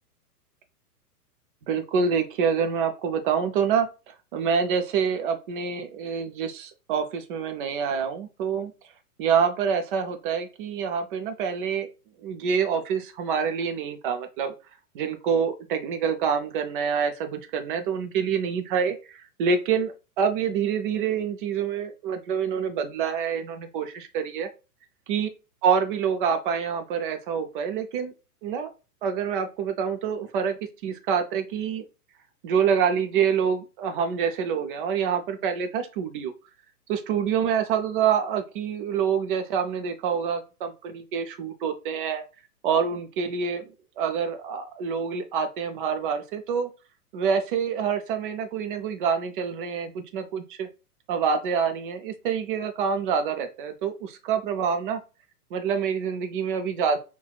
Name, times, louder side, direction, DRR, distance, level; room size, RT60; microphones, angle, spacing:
voice 1, 1.7-3.9 4.3-8.7 9.2-11.9 12.2-14.5 14.9-24.5 25.1-25.3 25.6-28.1 28.4-28.7 29.0-31.8 32.4-36.3 36.9-42.2 42.6-43.7 44.0-46.7 47.1-50.7 51.1-55.0 55.5-57.0, right 7 dB, 35° right, 7 dB, 0.5 m, -26 dB
5.6 x 2.3 x 2.3 m, 0.32 s
hypercardioid pair, 115°, 46 cm